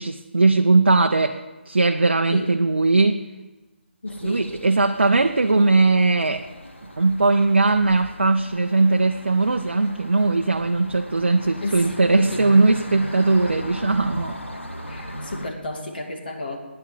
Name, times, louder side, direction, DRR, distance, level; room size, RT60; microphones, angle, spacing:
voice 1, 0.0-3.2 4.2-6.5 7.0-14.4, right 3 dB, 65° right, 5 dB, 0.7 m, -19 dB
voice 2, 4.0-4.5 11.6-12.4 14.9-16.6, left 2 dB, 50° left, 2 dB, 2.5 m, -32 dB
sound 1, 4.1-15.5, equal, 85° left, 1.9 m, -38 dB
14.5 x 9.8 x 7.2 m, 1.2 s
figure-of-eight pair, 150°, 6 cm